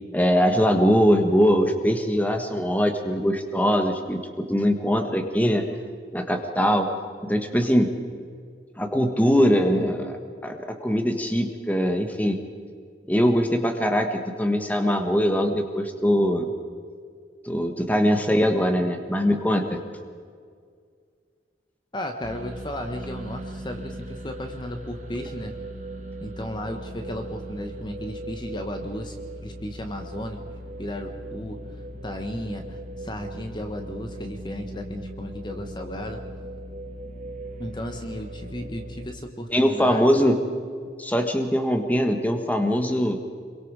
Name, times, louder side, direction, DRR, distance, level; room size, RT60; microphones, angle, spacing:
voice 1, 0.1-5.6 6.1-6.9 7.2-7.9 8.8-10.1 10.4-12.4 13.1-16.5 17.4-19.8 39.5-40.4 41.0-43.2, equal, 10° left, 5 dB, 1.5 m, -22 dB
voice 2, 21.9-25.6 26.2-29.2 29.4-30.4 30.8-36.2 37.6-40.1, equal, 25° left, 5 dB, 1.3 m, -34 dB
sound 1, 22.2-39.1, right 1 dB, 45° right, 2.1 m, -38 dB
27.0 x 23.0 x 4.9 m, 2.1 s
head